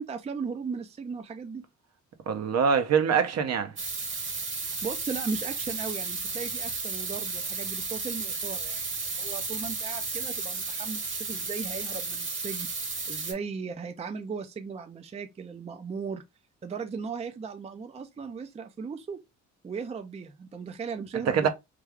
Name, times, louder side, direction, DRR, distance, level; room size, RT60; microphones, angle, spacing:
voice 1, 0.0-1.7 4.6-8.8 9.1-12.7 13.1-16.2 16.6-19.2 19.6-21.5, right 5 dB, 20° right, 0.4 m, -37 dB
voice 2, 2.3-3.7 21.3-21.5, right 6 dB, 60° right, 0.7 m, -24 dB
sound 1, 3.8-13.3, right 4 dB, 40° right, 1.2 m, -33 dB
3.3 x 2.3 x 3.4 m
cardioid pair, 90°, 30 cm